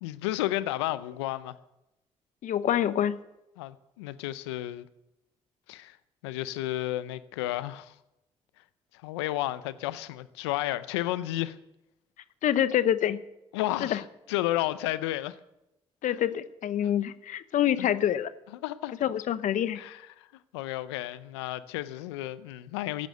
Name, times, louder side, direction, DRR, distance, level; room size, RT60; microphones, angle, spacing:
voice 1, 0.0-1.5 3.6-4.9 5.7-6.0 6.2-7.9 9.0-11.6 13.5-15.4 17.8-17.9 18.6-18.9 19.8-20.3 20.5-23.1, left 15 dB, 90° left, 0.7 m, -32 dB
voice 2, 2.4-3.2 12.4-13.2 13.8-14.0 16.0-18.3 19.0-19.8, left 10 dB, 65° left, 1.0 m, -26 dB
15.5 x 11.5 x 6.8 m
hypercardioid pair, 45°, 14 cm